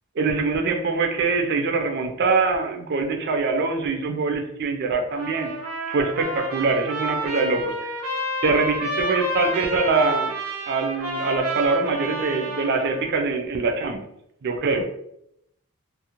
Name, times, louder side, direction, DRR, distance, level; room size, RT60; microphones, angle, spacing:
voice 1, 0.2-5.5 5.9-7.7 8.4-10.4 10.7-14.0 14.4-14.9, right 4 dB, 50° right, 4 dB, 0.4 m, -23 dB
Trumpet, 5.1-13.2, right 1 dB, 85° right, 0.7 m, -30 dB
2.5 x 2.0 x 2.8 m, 0.78 s
head